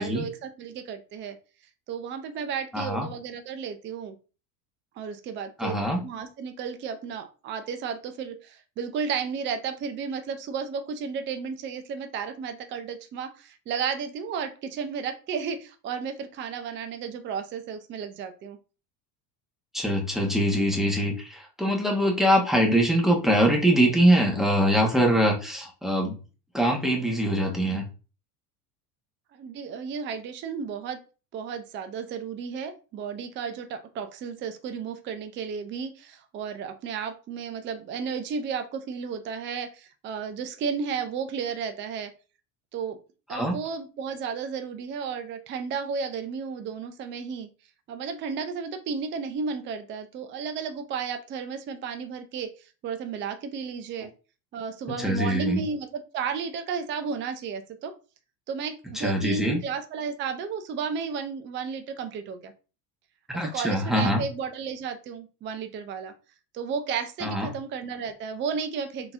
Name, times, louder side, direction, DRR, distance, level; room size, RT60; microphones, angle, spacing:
voice 1, 0.0-1.4 1.9-4.2 5.0-18.6 29.3-31.0 31.3-42.1 42.7-43.0 43.3-47.5 47.9-54.1 54.5-55.9 56.1-57.9 58.5-62.5 63.4-66.1 66.5-69.1, right 6 dB, 25° right, 8 dB, 0.4 m, -33 dB
voice 2, 2.7-3.1 5.6-6.0 19.7-26.2 26.5-27.8 43.3-43.6 54.9-55.6 58.9-59.6 63.3-64.2 67.2-67.5, equal, ahead, 0 dB, 0.9 m, -23 dB
3.7 x 2.8 x 2.3 m, 0.34 s
hypercardioid pair, 80°, 49 cm